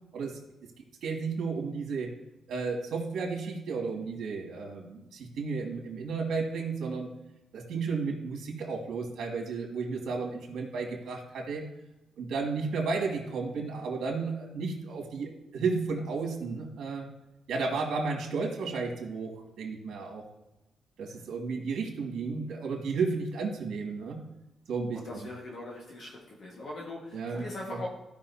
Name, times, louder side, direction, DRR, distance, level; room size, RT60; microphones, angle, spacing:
voice 1, 1.0-2.1 2.5-7.1 7.5-11.6 12.2-17.1 17.5-20.3 21.0-24.2 24.7-25.0 27.1-27.8, right 4 dB, 70° right, 0 dB, 2.4 m, -33 dB
voice 2, 24.9-27.9, left 2 dB, 50° left, -4 dB, 1.7 m, -41 dB
15.5 x 5.5 x 2.8 m, 0.95 s
cardioid pair, 165°, 0 cm